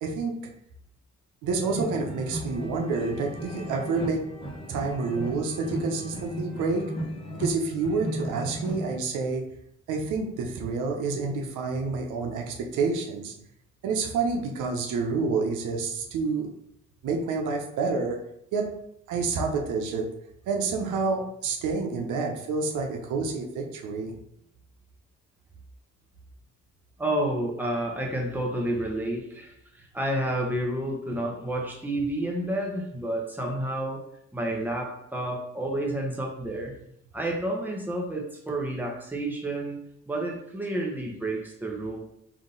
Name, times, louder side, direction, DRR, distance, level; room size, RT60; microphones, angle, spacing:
voice 1, 0.0-0.5 1.4-4.3 4.7-6.8 7.3-9.4 9.9-13.3 13.8-16.5 17.0-18.2 18.5-18.7 19.1-20.0 20.5-24.2, right 4 dB, 85° right, 2 dB, 0.7 m, -28 dB
sound 1, 1.5-9.0, equal, 20° left, 1.1 m, -35 dB
voice 2, 27.0-34.0 34.3-36.7 37.1-39.8 40.1-42.0, right 1 dB, 5° right, -1 dB, 1.0 m, -30 dB
3.6 x 2.8 x 3.8 m, 0.75 s
cardioid pair, 90°, 30 cm